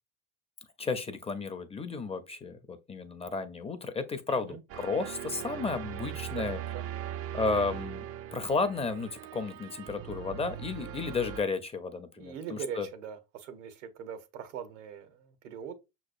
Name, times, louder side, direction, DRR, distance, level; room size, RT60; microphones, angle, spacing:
voice 1, 0.8-6.6 7.3-8.0 8.3-12.9, left 4 dB, 15° left, 0.5 m, -33 dB
voice 2, 4.3-4.6 6.3-6.9 12.2-15.7, right 7 dB, 80° right, 0.9 m, -41 dB
sound 1, 4.7-11.4, right 11 dB, 40° right, 0.4 m, -40 dB
6.0 x 3.0 x 2.5 m
hypercardioid pair, 85°, 37 cm